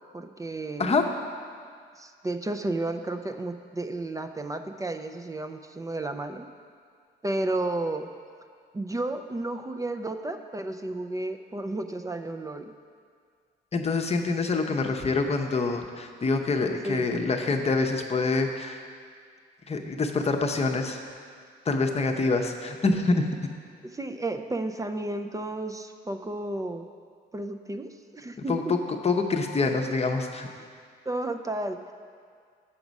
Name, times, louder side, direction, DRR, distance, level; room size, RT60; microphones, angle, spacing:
voice 1, 0.1-0.9 2.0-6.5 7.2-8.1 8.7-12.7 16.8-17.3 23.9-26.9 27.3-28.8 31.1-31.8, right 2 dB, 15° right, 7 dB, 0.4 m, -32 dB
voice 2, 13.7-18.8 19.7-21.0 21.7-23.2 28.5-28.8 29.0-30.5, left 3 dB, 30° left, 4 dB, 0.7 m, -26 dB
7.2 x 5.9 x 5.2 m, 2.1 s
cardioid pair, 90°, 20 cm